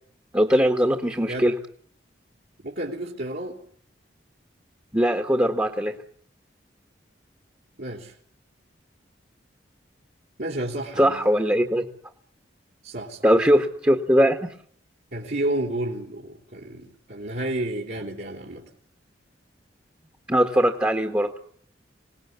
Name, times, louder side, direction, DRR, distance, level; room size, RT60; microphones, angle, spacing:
voice 1, 0.3-1.6 4.9-6.0 11.0-11.8 13.2-14.5 20.3-21.3, equal, 15° right, 3 dB, 1.7 m, -20 dB
voice 2, 2.6-3.6 7.8-8.1 10.4-11.2 12.8-13.3 15.1-18.7, right 1 dB, 60° right, -2 dB, 3.9 m, -31 dB
26.5 x 19.0 x 9.6 m, 0.62 s
head